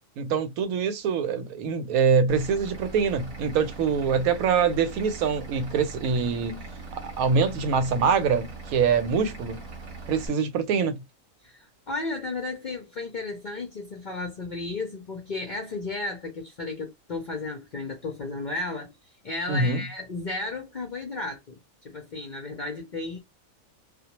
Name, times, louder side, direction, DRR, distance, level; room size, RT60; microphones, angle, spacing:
voice 1, 0.2-6.6 6.9-9.6 10.1-11.0 19.5-19.8, right 5 dB, 85° right, 1.0 m, -24 dB
Vehicle / Engine, 2.3-10.3, right 3 dB, 40° right, 0.9 m, -41 dB
voice 2, 11.4-18.9 19.2-21.6 21.8-23.2, left 3 dB, 60° left, 0.5 m, -34 dB
2.3 x 2.1 x 2.8 m
omnidirectional pair, 1.5 m